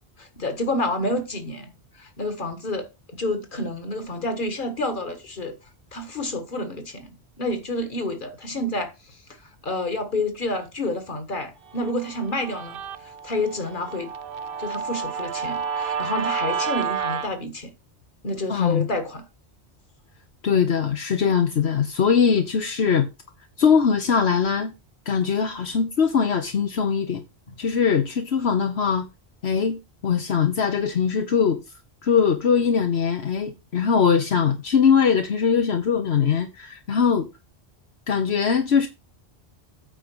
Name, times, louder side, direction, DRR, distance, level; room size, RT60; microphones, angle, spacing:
voice 1, 0.2-2.9 3.2-5.5 5.9-9.2 9.6-14.1 14.6-17.7 18.2-19.2 27.5-27.6, left 1 dB, 50° left, 1.9 m, -29 dB
Guitar, 11.8-17.3, right 7 dB, 60° right, 0.8 m, -30 dB
voice 2, 18.5-18.9 20.4-23.1 23.6-24.7 25.1-27.2 27.6-29.1 29.4-31.6 32.0-37.3 38.1-38.9, left 6 dB, 70° left, 1.3 m, -21 dB
8.9 x 5.1 x 6.2 m
omnidirectional pair, 1.1 m